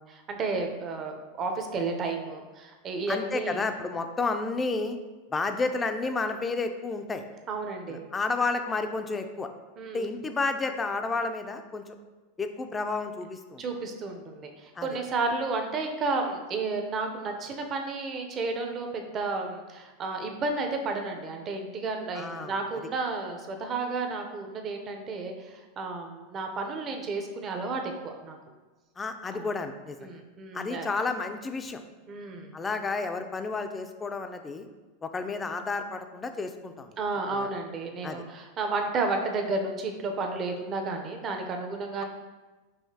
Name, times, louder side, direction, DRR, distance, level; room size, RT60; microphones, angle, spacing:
voice 1, 0.0-3.7 7.5-8.0 9.8-10.1 13.6-28.4 29.3-29.5 30.0-30.9 32.1-32.5 37.0-42.0, right 3 dB, 35° right, 4 dB, 0.6 m, -32 dB
voice 2, 3.1-5.0 5.3-7.2 7.9-9.5 9.9-12.0 12.4-13.6 14.8-14.9 22.2-22.5 29.0-30.1 30.5-31.8 32.5-34.7 35.0-36.9 37.3-37.5 38.0-38.2, left 3 dB, 20° left, 7 dB, 0.4 m, -31 dB
5.6 x 2.8 x 2.8 m, 1.2 s
hypercardioid pair, 105°, 0 cm